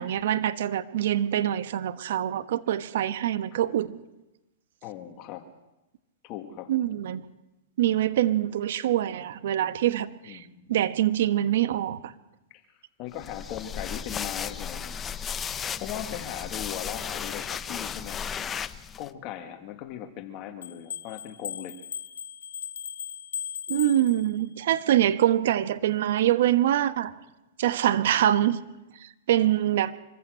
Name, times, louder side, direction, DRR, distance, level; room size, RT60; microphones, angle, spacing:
voice 1, 0.0-3.9 6.7-7.2 7.8-12.1 23.7-27.1 27.6-28.6 29.0-29.9, right 12 dB, 70° right, 12 dB, 1.2 m, -24 dB
voice 2, 4.8-5.4 6.2-6.7 10.3-10.7 12.5-12.6 13.0-15.0 15.8-18.7 19.0-21.7, left 10 dB, 40° left, 7 dB, 2.1 m, -38 dB
sound 1, 13.2-19.1, left 7 dB, 20° left, 0.8 m, -35 dB
sound 2, 20.6-24.6, left 8 dB, 85° left, 1.3 m, -38 dB
25.0 x 15.0 x 7.8 m, 0.99 s
hypercardioid pair, 130°, 0 cm